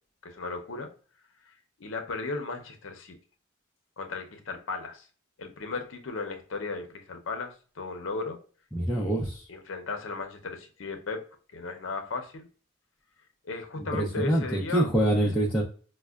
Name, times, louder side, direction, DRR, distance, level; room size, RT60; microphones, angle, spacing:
voice 1, 0.2-0.9 1.5-1.6 1.8-3.1 4.0-5.1 5.4-8.4 8.9-11.2 11.5-12.5 13.4-14.9 15.2-15.3, left 3 dB, 70° left, 5 dB, 0.6 m, -36 dB
voice 2, 8.7-9.4 13.9-15.6, right 1 dB, 5° left, -6 dB, 0.5 m, -25 dB
5.2 x 2.1 x 2.3 m, 0.41 s
head